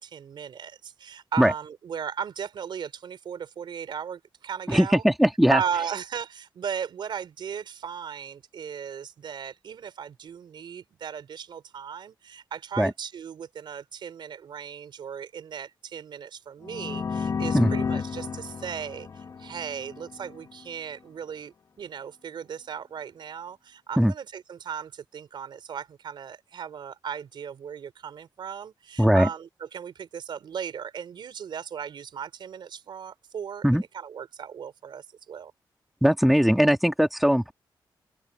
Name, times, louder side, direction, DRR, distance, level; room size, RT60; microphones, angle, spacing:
voice 1, 0.0-5.0 5.5-35.5, right 8 dB, 75° right, 4.5 m, -36 dB
voice 2, 4.7-5.6 12.8-12.9 17.5-17.7 24.0-24.1 29.0-29.3 33.6-33.8 36.0-37.5, equal, ahead, 2.4 m, -20 dB
sound 1, 16.6-20.4, left 5 dB, 50° left, 3.1 m, -31 dB
open air
wide cardioid pair, 145°, 8 cm